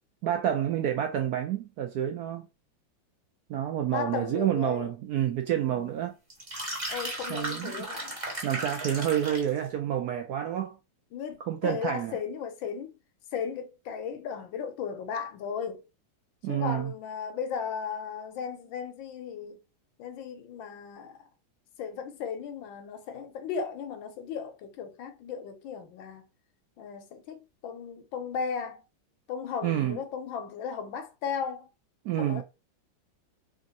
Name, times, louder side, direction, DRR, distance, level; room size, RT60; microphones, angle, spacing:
voice 1, 0.2-2.4 3.5-6.1 7.3-7.8 8.4-10.8 11.5-12.1 16.4-16.9 29.6-30.0 32.0-32.4, right 10 dB, 75° right, 0.9 m, -28 dB
voice 2, 3.9-4.9 5.7-5.9 6.9-8.2 11.1-12.9 13.3-15.8 16.5-19.6 20.0-21.3 21.8-26.3 26.8-28.8 29.3-31.7 32.2-32.4, left 6 dB, 80° left, 1.5 m, -36 dB
sound 1, 6.3-9.6, right 1 dB, 25° right, 0.9 m, -36 dB
3.6 x 2.5 x 4.0 m
omnidirectional pair, 2.1 m